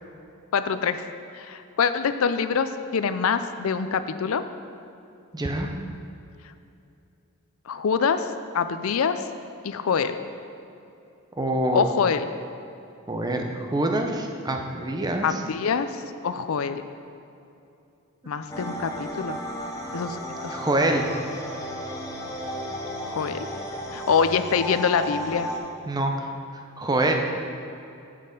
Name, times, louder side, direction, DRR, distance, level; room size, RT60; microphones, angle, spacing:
voice 1, 0.5-1.0 1.3-4.4 7.7-9.2 9.6-10.2 11.7-12.3 15.2-16.8 18.3-19.4 19.9-20.6 23.0-23.5 23.9-25.5, left 6 dB, 70° left, 11 dB, 0.4 m, -25 dB
voice 2, 5.3-5.7 11.4-11.9 13.1-15.4 20.5-21.0 25.9-26.3 26.8-27.2, right 1 dB, 20° right, 3 dB, 0.7 m, -25 dB
sound 1, 18.5-25.6, equal, 15° left, 0.9 m, -34 dB
7.4 x 6.5 x 5.2 m, 2.7 s
head